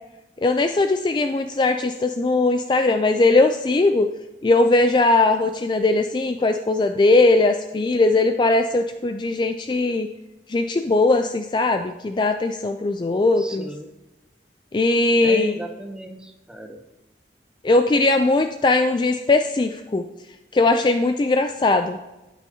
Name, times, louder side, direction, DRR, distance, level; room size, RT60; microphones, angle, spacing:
voice 1, 0.4-4.1 4.4-10.1 10.5-13.7 14.7-15.6 17.6-20.1 20.5-22.0, left 2 dB, 25° left, 7 dB, 0.3 m, -19 dB
voice 2, 13.4-13.9 15.2-16.8, right 1 dB, 5° right, 4 dB, 0.7 m, -36 dB
16.5 x 6.2 x 2.8 m, 1.0 s
head